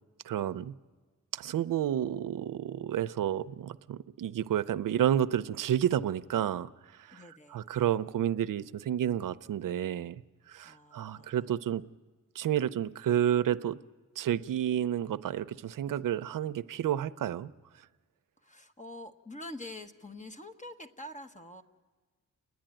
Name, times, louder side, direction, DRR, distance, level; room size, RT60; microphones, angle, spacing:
voice 1, 0.2-0.7 1.3-6.7 7.1-7.2 7.5-10.2 10.5-11.8 12.4-13.8 14.2-17.5, right 10 dB, 75° right, 15 dB, 0.6 m, -30 dB
voice 2, 7.1-7.6 10.6-11.5 18.4-21.6, left 1 dB, 20° left, 6 dB, 1.3 m, -46 dB
30.0 x 10.5 x 8.9 m, 1.4 s
cardioid pair, 60°, 33 cm